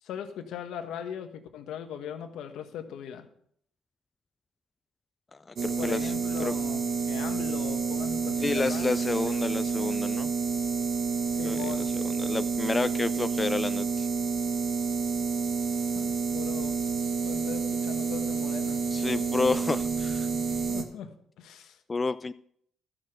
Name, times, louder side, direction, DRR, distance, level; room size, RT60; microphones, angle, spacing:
voice 1, 0.0-3.3 5.7-6.8 7.1-8.9 11.3-11.9 15.9-16.8 17.2-18.8 20.7-21.1 21.4-21.8, left 9 dB, 85° left, 6 dB, 1.3 m, -39 dB
voice 2, 5.5-6.1 6.4-6.6 8.4-10.3 11.4-14.1 18.9-20.3 21.9-22.3, left 3 dB, 25° left, 13 dB, 0.3 m, -30 dB
sound 1, 5.6-20.8, right 5 dB, 50° right, 1.4 m, -29 dB
13.0 x 6.4 x 6.4 m, 0.67 s
cardioid pair, 90°, 0 cm